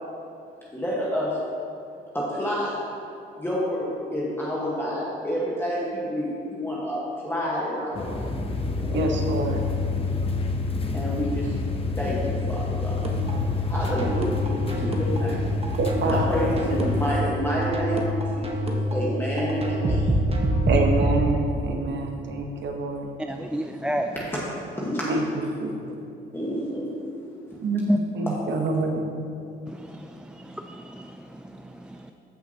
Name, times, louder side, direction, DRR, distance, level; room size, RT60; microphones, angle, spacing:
voice 1, 0.7-1.4 2.1-2.8 3.4-8.3 8.8-9.0 10.9-11.5 12.0-13.1 13.7-15.5 16.0-20.1 24.1-24.5 24.8-25.2 26.3-26.9 28.6-28.7, equal, 10° left, -6 dB, 1.4 m, -29 dB
sound 1, 7.9-17.2, left 3 dB, 30° left, 0.9 m, -28 dB
voice 2, 8.9-9.6 15.8-16.4 20.7-23.1 25.1-25.2 25.6-25.7 27.6-29.0, right 2 dB, 65° right, 3 dB, 1.1 m, -26 dB
sound 2, 13.0-21.2, equal, 30° right, 1.2 m, -26 dB
voice 3, 23.3-24.2 27.9-28.0 29.7-32.1, right 1 dB, 5° right, 4 dB, 0.3 m, -31 dB
14.0 x 5.8 x 2.9 m, 2.6 s
cardioid pair, 90°, 20 cm